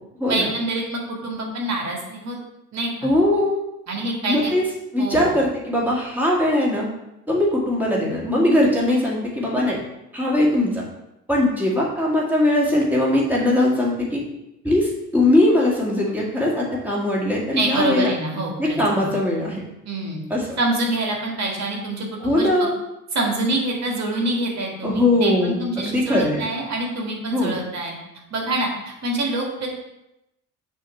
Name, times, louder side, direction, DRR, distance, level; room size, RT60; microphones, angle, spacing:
voice 1, 0.3-2.4 2.7-3.1 3.9-4.5 5.0-5.4 17.5-19.1 19.8-20.2 20.6-22.7 23.1-27.9 28.3-28.7 29.0-29.7, right 2 dB, 40° right, 0 dB, 1.8 m, -26 dB
voice 2, 3.0-3.6 4.2-4.7 4.9-6.9 7.3-9.8 10.1-10.8 11.3-14.2 14.6-18.1 18.6-19.6 20.3-20.6 22.2-22.8 24.8-26.5 27.3-27.5, left 1 dB, 5° right, -5 dB, 2.1 m, -20 dB
6.2 x 3.0 x 5.7 m, 0.90 s
figure-of-eight pair, 55°, 44 cm